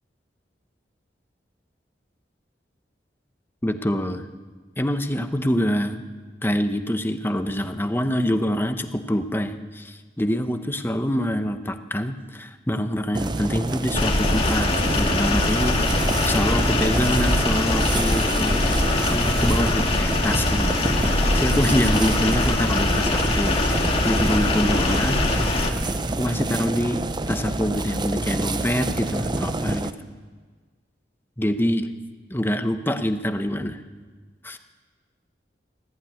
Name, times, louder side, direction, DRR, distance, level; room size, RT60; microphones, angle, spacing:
voice 1, 3.6-4.3 4.8-6.0 6.4-20.8 21.3-25.3 26.2-27.0 27.3-29.9 31.4-31.9 32.3-33.8 34.4-34.6, equal, 15° left, 7 dB, 1.1 m, -25 dB
sound 1, 13.1-29.9, right 2 dB, 25° right, 0.7 m, -28 dB
sound 2, 13.9-25.7, left 2 dB, 35° left, 2.0 m, -22 dB
18.0 x 15.0 x 9.6 m, 1.4 s
head